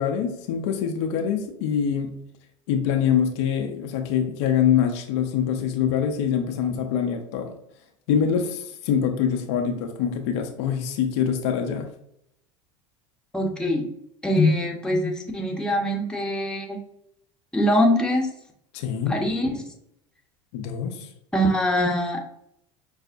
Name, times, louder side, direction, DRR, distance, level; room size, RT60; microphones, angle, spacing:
voice 1, 0.0-2.2 2.7-7.5 8.1-11.9 18.7-19.2 20.5-21.1, left 8 dB, 65° left, 4 dB, 0.5 m, -24 dB
voice 2, 13.3-13.9 14.2-16.8 17.5-18.3 19.1-19.6 21.3-22.2, left 1 dB, 5° left, 0 dB, 0.8 m, -23 dB
5.3 x 2.0 x 2.5 m, 0.75 s
hypercardioid pair, 80°, 15 cm